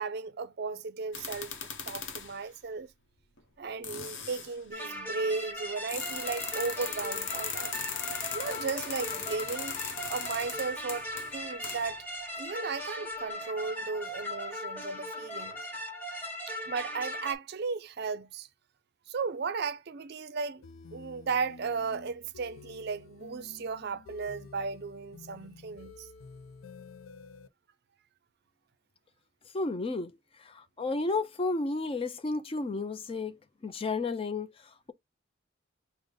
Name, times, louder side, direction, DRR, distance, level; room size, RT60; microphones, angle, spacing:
voice 1, 0.0-1.5 1.8-2.9 3.6-7.7 8.3-9.8 10.1-12.0 12.4-15.6 16.5-18.5 19.1-20.6 20.9-26.1, right 4 dB, 55° right, 0.4 m, -35 dB
sound 1, 1.1-2.4 3.4-3.5 3.8-4.5 5.9-12.0, left 6 dB, 65° left, 0.9 m, -38 dB
sound 2, 4.7-17.4, left 1 dB, 10° left, 1.1 m, -39 dB
sound 3, 20.6-27.5, left 4 dB, 85° left, 0.5 m, -50 dB
voice 2, 29.5-30.1 30.4-33.4 33.6-34.5, left 3 dB, 30° left, 0.4 m, -32 dB
5.0 x 2.0 x 3.8 m
head